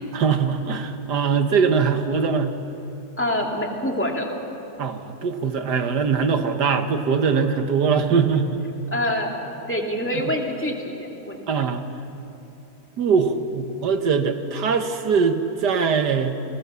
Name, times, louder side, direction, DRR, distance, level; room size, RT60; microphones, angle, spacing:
voice 1, 0.1-2.6 4.8-8.6 11.5-11.8 13.0-16.4, right 5 dB, 85° right, 7 dB, 1.9 m, -22 dB
voice 2, 3.2-4.3 8.9-11.4, left 1 dB, 5° left, 0 dB, 2.5 m, -26 dB
30.0 x 19.5 x 7.0 m, 2.9 s
omnidirectional pair, 1.7 m